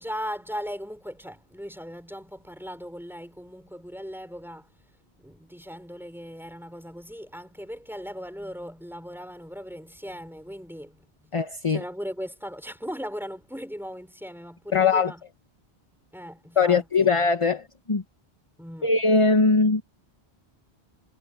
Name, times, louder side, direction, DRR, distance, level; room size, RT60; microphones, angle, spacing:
voice 1, 0.0-4.7 5.2-11.4 11.7-15.2 16.1-17.1 18.6-18.9, equal, ahead, 5.5 m, -38 dB
voice 2, 11.3-11.8 14.7-15.1 16.6-18.0 18.8-19.8, left 4 dB, 30° left, 1.1 m, -21 dB
omnidirectional pair, 1.1 m